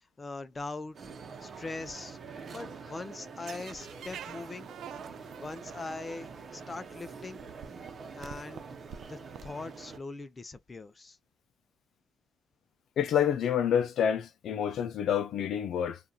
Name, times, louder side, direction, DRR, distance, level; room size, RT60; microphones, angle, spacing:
voice 1, 0.2-1.0 1.4-2.2 2.5-4.7 5.3-7.4 8.2-8.7 9.1-11.2, left 3 dB, 30° left, 0.6 m, -41 dB
sound 1, 0.9-10.0, right 5 dB, 50° right, 0.8 m, -46 dB
sound 2, 3.4-6.3 7.1-7.2 7.4-9.5, right 9 dB, 75° right, 0.3 m, -46 dB
voice 2, 13.0-16.0, left 8 dB, 75° left, 0.4 m, -28 dB
2.7 x 2.4 x 2.3 m
cardioid pair, 90°, 0 cm